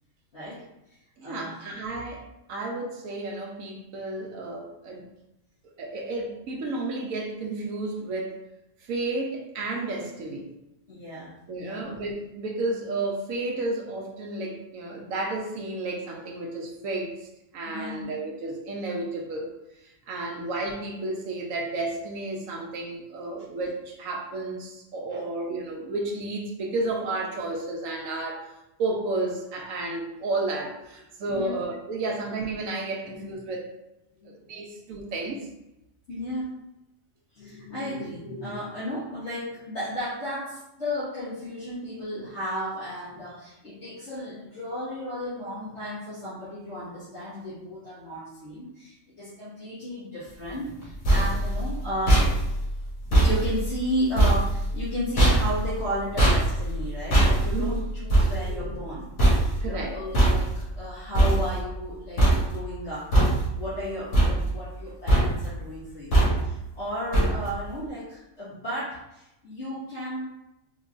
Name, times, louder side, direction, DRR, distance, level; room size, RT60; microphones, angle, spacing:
voice 1, 0.3-0.6 1.2-1.7 10.9-11.9 17.7-18.1 20.1-20.2 25.1-25.2 31.3-31.6 33.0-33.2 34.2-34.3 36.1-36.5 37.3-52.2 53.2-70.3, equal, 60° left, -12 dB, 1.6 m, -34 dB
voice 2, 1.2-2.2 2.5-5.0 5.8-8.4 8.9-10.5 11.5-17.1 17.5-19.5 20.1-28.4 28.8-33.7 34.5-35.5 57.5-57.8 59.6-59.9, right 2 dB, 80° right, -1 dB, 1.2 m, -32 dB
sound 1, 50.7-61.9 62.2-62.8 63.1-63.8 64.1-64.8 65.1-65.6 66.1-66.7 67.1-67.7, right 1 dB, 85° left, 2.0 m, -23 dB
4.5 x 3.0 x 2.4 m, 0.90 s
omnidirectional pair, 1.4 m